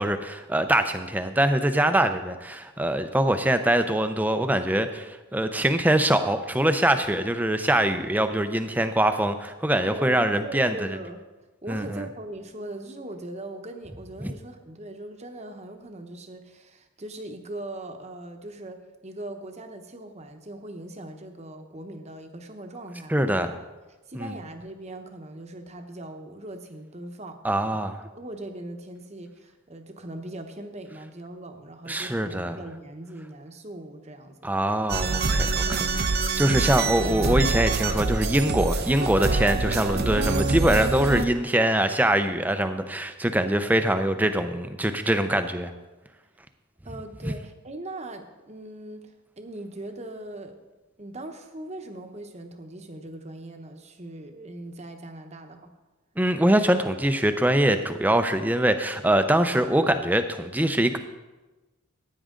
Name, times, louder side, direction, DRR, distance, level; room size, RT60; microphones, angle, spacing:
voice 1, 0.0-10.9 11.7-12.0 14.2-14.3 23.1-23.5 24.2-24.3 27.4-28.0 31.9-32.6 34.4-35.8 36.4-45.7 47.2-47.3 56.2-61.0, right 1 dB, 10° right, 8 dB, 0.5 m, -23 dB
voice 2, 9.8-11.2 11.6-23.4 24.1-27.4 27.7-27.8 28.1-34.5 35.6-36.0 46.8-50.6 51.0-55.7, right 1 dB, 30° right, 5 dB, 1.0 m, -40 dB
sound 1, 34.9-41.2, right 3 dB, 45° right, 0.6 m, -25 dB
15.5 x 9.3 x 3.8 m, 1.2 s
head